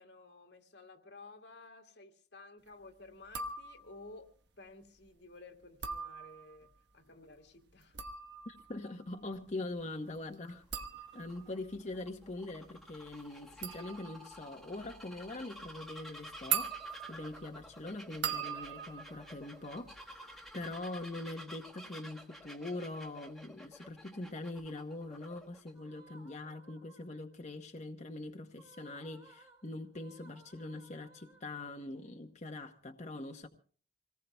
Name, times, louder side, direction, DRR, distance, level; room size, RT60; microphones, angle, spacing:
voice 1, 0.0-4.3 4.6-8.0, left 2 dB, 85° left, 2.2 m, -54 dB
sound 1, 3.2-4.1 5.6-6.7 7.7-20.4 20.7-21.2, right 7 dB, 80° right, 1.2 m, -42 dB
voice 2, 8.5-10.8 11.1-16.7 17.1-33.5, left 2 dB, 45° left, 0.9 m, -43 dB
Bird vocalization bird call bird song, 10.7-25.7, equal, ahead, 1.4 m, -52 dB
sound 2, 25.7-27.4 28.5-31.9, right 3 dB, 20° right, 1.9 m, -61 dB
27.0 x 19.0 x 2.2 m
head